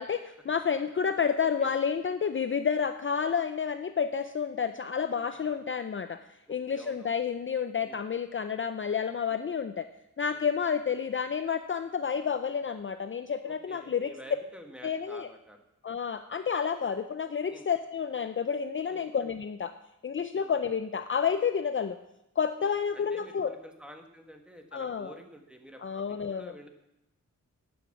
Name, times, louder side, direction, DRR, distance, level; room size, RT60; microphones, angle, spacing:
voice 1, 0.0-6.2 6.5-9.9 10.2-14.1 14.8-15.3 15.8-19.7 20.0-22.0 22.4-23.5 24.7-25.1 25.8-26.5, left 6 dB, 40° left, 9 dB, 0.5 m, -30 dB
voice 2, 5.2-5.6 6.5-7.2 7.8-8.0 9.3-9.4 10.3-10.5 13.5-15.6 17.5-17.7 18.9-19.1 20.3-20.5 22.6-26.7, equal, 5° right, 4 dB, 1.5 m, -50 dB
12.0 x 9.4 x 7.2 m, 0.87 s
wide cardioid pair, 175°, 32 cm